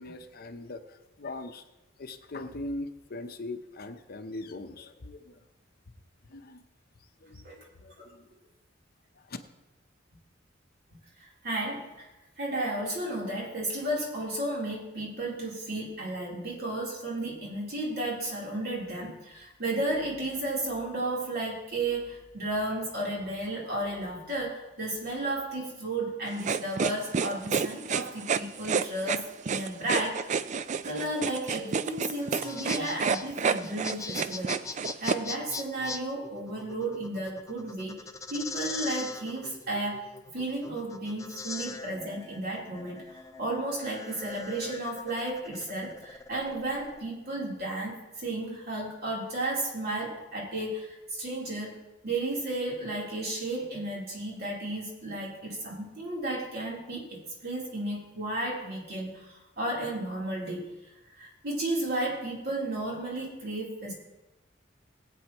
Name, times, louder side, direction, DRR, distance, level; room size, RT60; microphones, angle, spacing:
voice 1, 0.0-1.6 2.0-5.4 6.3-6.6 7.2-8.3 9.1-9.4, left 2 dB, 55° left, 8 dB, 0.7 m, -41 dB
voice 2, 11.2-12.1 12.4-30.5 30.8-34.6 35.0-38.0 38.3-40.1 40.3-60.7 61.2-63.9, right 1 dB, 55° right, -4 dB, 3.6 m, -33 dB
sound 1, 26.4-35.2, right 5 dB, 40° right, 0.4 m, -29 dB
sound 2, 32.2-47.0, left 4 dB, 15° left, 0.5 m, -41 dB
19.5 x 8.6 x 3.0 m, 1.0 s
head